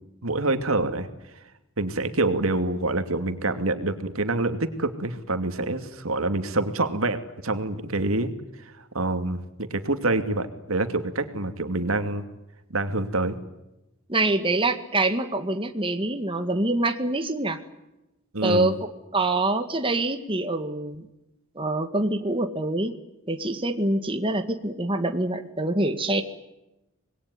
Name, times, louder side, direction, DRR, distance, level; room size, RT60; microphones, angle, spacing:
voice 1, 0.2-1.1 1.8-8.3 8.6-12.2 12.7-13.4 18.3-18.7, right 2 dB, 80° right, 8 dB, 2.6 m, -26 dB
voice 2, 14.1-17.6 18.4-21.1 21.6-22.9 23.3-26.2, right 2 dB, 25° right, 7 dB, 1.8 m, -25 dB
26.5 x 21.5 x 9.6 m, 0.94 s
head